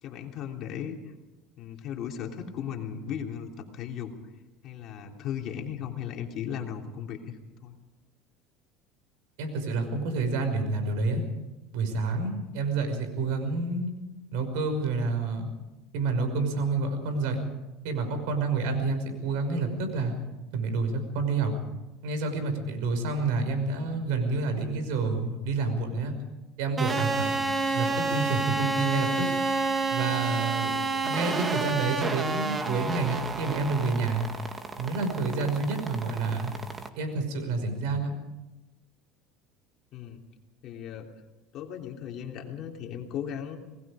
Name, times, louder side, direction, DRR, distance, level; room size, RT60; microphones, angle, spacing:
voice 1, 0.0-1.1 1.6-4.1 4.6-7.8 39.9-40.2 40.6-41.1 41.5-43.6, left 8 dB, 50° left, 2 dB, 3.2 m, -36 dB
voice 2, 9.4-11.2 11.7-13.9 14.3-15.5 15.9-17.4 17.8-20.1 20.5-21.5 22.0-26.1 26.6-27.3 27.7-29.3 29.9-34.2 34.8-36.5 37.0-38.2, right 3 dB, 75° right, 7 dB, 5.7 m, -28 dB
sound 1, 26.8-36.9, right 3 dB, 20° right, 2.0 m, -30 dB
27.0 x 20.0 x 5.1 m, 1.1 s
supercardioid pair, 120°, 0 cm